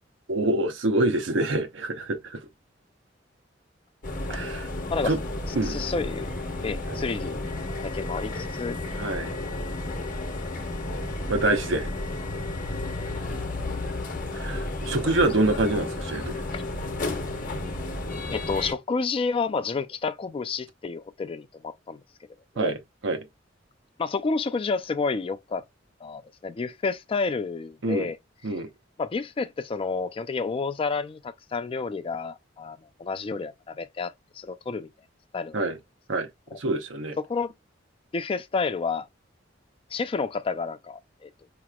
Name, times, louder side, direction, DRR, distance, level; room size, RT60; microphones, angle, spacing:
voice 1, 0.3-2.4 4.3-4.7 5.1-5.2 5.6-5.8 6.9-7.0 9.0-9.3 11.3-11.9 14.3-16.3 22.6-22.8 23.0-23.2 27.8-28.1 28.4-28.7 35.5-35.8 36.1-36.3 36.6-37.2, right 2 dB, 90° right, 0.8 m, -26 dB
sound 1, 4.0-18.7, left 2 dB, 45° left, 0.9 m, -32 dB
voice 2, 5.6-6.4 6.6-8.8 13.0-13.1 16.5-16.6 18.3-22.0 22.6-22.7 24.0-25.6 26.0-28.2 29.0-34.9 35.3-35.6 36.5-36.6 37.2-37.5 38.1-39.1 39.9-41.3, left 4 dB, 30° left, 0.3 m, -30 dB
5.0 x 2.9 x 2.2 m
head